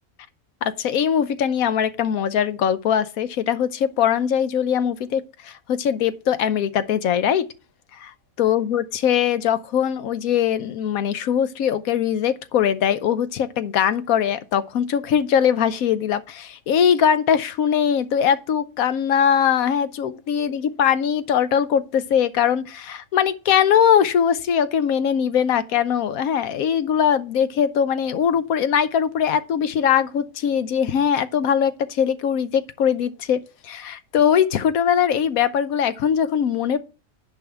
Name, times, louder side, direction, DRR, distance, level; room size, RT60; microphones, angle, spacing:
voice 1, 0.6-7.5 7.9-36.8, left 8 dB, 85° left, 1.1 m, -21 dB
10.5 x 3.6 x 6.8 m
omnidirectional pair, 1.5 m